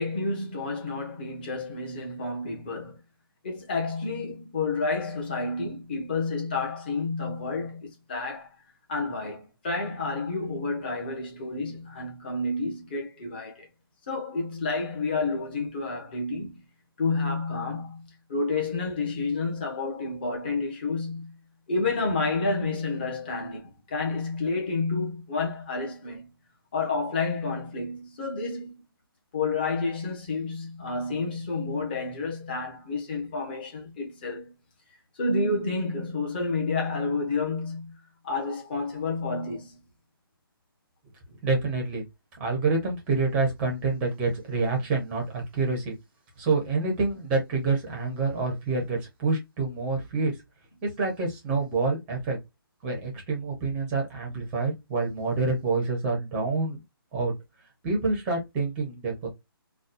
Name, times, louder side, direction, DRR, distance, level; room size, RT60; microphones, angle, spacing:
voice 1, 0.0-3.0 3.4-8.5 8.9-13.7 14.1-16.6 17.0-21.4 21.7-26.3 26.7-28.8 29.3-34.5 35.2-39.8, left 3 dB, 25° left, 1.1 m, -30 dB
voice 2, 41.4-42.0 42.4-45.9 46.4-50.3 50.8-52.4 52.8-56.8 57.1-57.3 57.8-59.3, right 3 dB, 10° right, 0.8 m, -27 dB
4.0 x 2.3 x 2.4 m
hypercardioid pair, 175°, 13 cm